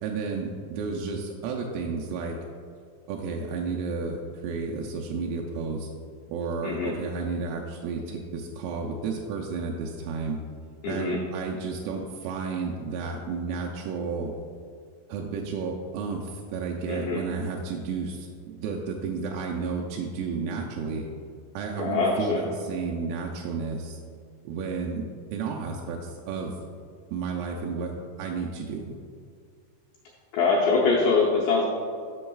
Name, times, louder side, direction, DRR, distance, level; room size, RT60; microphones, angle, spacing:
voice 1, 0.0-2.4 3.1-5.9 6.3-10.4 10.9-14.3 15.1-21.1 21.5-24.0 24.5-26.6 27.1-27.9 28.2-28.9, right 4 dB, 85° right, 0 dB, 3.2 m, -32 dB
voice 2, 6.6-6.9 10.8-11.2 16.9-17.2 21.8-22.5 30.3-31.7, left 4 dB, 80° left, -4 dB, 2.5 m, -24 dB
13.0 x 6.3 x 2.3 m, 2.2 s
omnidirectional pair, 6.0 m